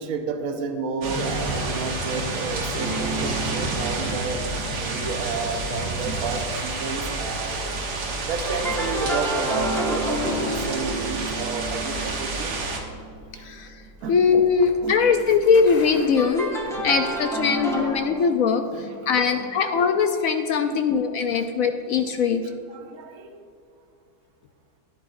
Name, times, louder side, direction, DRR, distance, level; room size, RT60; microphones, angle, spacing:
voice 1, 0.0-4.4 4.8-7.8 8.3-12.5 12.8-12.9 13.3-13.4 14.0-14.2 14.8-15.1 16.7-17.5 18.7-19.1 19.4-19.5 20.6-20.9 21.3-21.5 22.4-23.5, right 4 dB, 55° right, 4 dB, 1.2 m, -32 dB
sound 1, 1.0-12.8, right 3 dB, 85° right, 1.9 m, -29 dB
sound 2, 2.8-7.1 7.3-13.7 16.0-18.1, right 1 dB, ahead, 1.0 m, -31 dB
sound 3, 13.0-17.4, left 1 dB, 25° left, 1.3 m, -44 dB
voice 2, 14.1-16.5 16.8-18.6 19.1-22.4, left 5 dB, 70° left, 6 dB, 0.8 m, -21 dB
12.5 x 11.0 x 2.5 m, 2.4 s
omnidirectional pair, 1.9 m